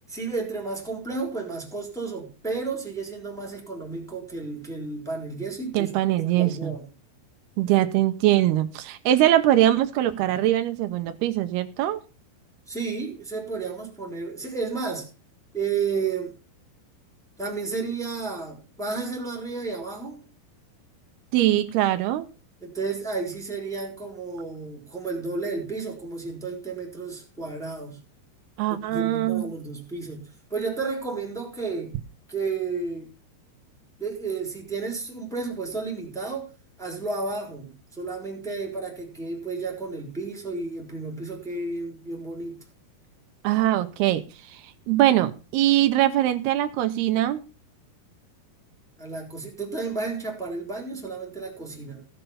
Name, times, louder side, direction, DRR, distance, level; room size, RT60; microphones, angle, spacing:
voice 1, 0.1-6.9 12.7-15.1 15.5-16.3 17.4-20.2 22.6-28.0 28.7-31.9 32.3-33.1 34.0-36.5 36.8-42.6 49.0-52.0, right 4 dB, ahead, 3.0 m, -32 dB
voice 2, 5.7-6.7 7.6-12.0 21.3-22.3 28.6-29.5 43.4-44.2 44.5-44.6 44.9-47.4, right 13 dB, 80° right, 2.8 m, -22 dB
16.0 x 7.0 x 5.6 m
omnidirectional pair, 4.6 m